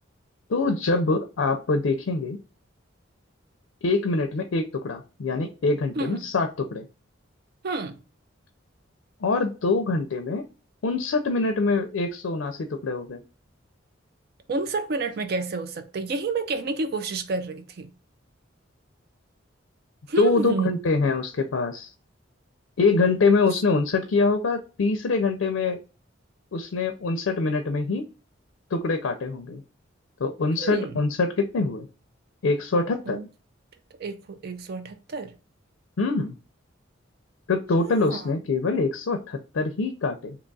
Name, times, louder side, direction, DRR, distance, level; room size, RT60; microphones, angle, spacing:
voice 1, 0.5-2.4 3.8-6.9 9.2-10.4 10.8-13.2 20.2-21.9 22.8-25.8 26.5-28.1 28.7-29.6 30.2-31.9 32.4-33.2 36.0-36.4 37.5-40.4, left 3 dB, 85° left, 0.5 m, -24 dB
voice 2, 7.6-8.0 14.5-17.9 20.1-20.8 30.6-31.0 33.1-33.3 34.0-35.3 37.9-38.2, right 3 dB, 55° right, 0.4 m, -29 dB
2.9 x 2.3 x 3.8 m
head